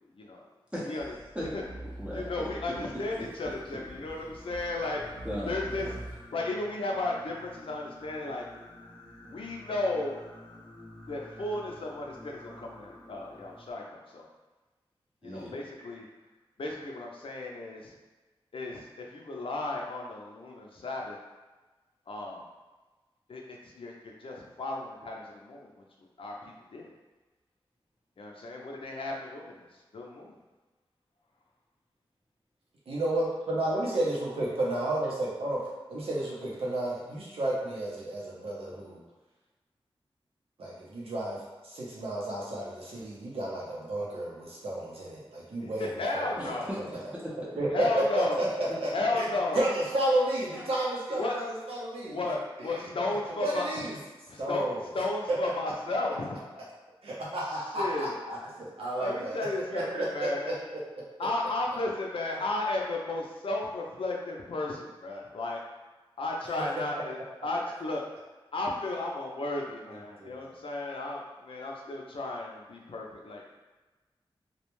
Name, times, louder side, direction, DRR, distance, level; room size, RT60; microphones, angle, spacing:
voice 1, 0.7-1.5 2.0-2.2 2.9-3.0 5.2-5.9 15.2-15.5 46.4-47.4 50.5-50.6, equal, 10° right, -7 dB, 0.6 m, -38 dB
sound 1, 1.0-6.1, right 1 dB, 50° right, 0.6 m, -45 dB
voice 2, 2.1-5.0 5.5-5.9 6.3-8.6 9.2-10.1 11.1-14.3 15.2-16.0 16.6-17.9 18.5-21.2 22.1-22.4 23.3-25.8 26.2-26.9 28.2-29.7 29.9-30.4 45.6-46.7 47.7-48.4 48.9-49.6 51.1-51.3 52.1-53.7 54.3-54.6 54.9-56.4 57.5-58.2 59.0-60.5 61.2-65.6 66.2-68.0 68.5-73.5, left 2 dB, 70° left, -1 dB, 0.5 m, -34 dB
Singing, 3.0-13.7, left 1 dB, 10° left, 0.9 m, -51 dB
voice 3, 32.9-35.6 35.9-39.0 40.6-46.5 47.6-47.9 48.1-49.3 49.5-52.4 53.4-54.0 54.4-54.8 55.9-56.0 57.0-59.5 59.7-60.8 69.9-70.5, right 1 dB, 85° right, -5 dB, 0.7 m, -32 dB
2.2 x 2.1 x 3.0 m, 1.2 s
wide cardioid pair, 60°, 10 cm